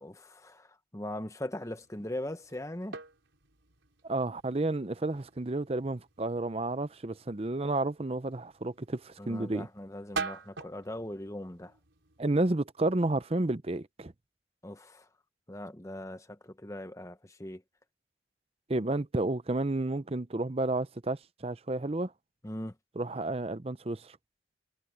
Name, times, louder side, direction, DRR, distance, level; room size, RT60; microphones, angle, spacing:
voice 1, 0.0-3.0 9.2-11.7 14.6-15.1 15.5-17.6 22.4-22.7, left 1 dB, 15° left, 1.1 m, -40 dB
sound 1, 1.6-12.2, right 4 dB, 85° right, 4.9 m, -45 dB
voice 2, 4.0-9.7 12.2-14.1 18.7-22.1 23.0-24.2, right 2 dB, 30° right, 0.7 m, -31 dB
head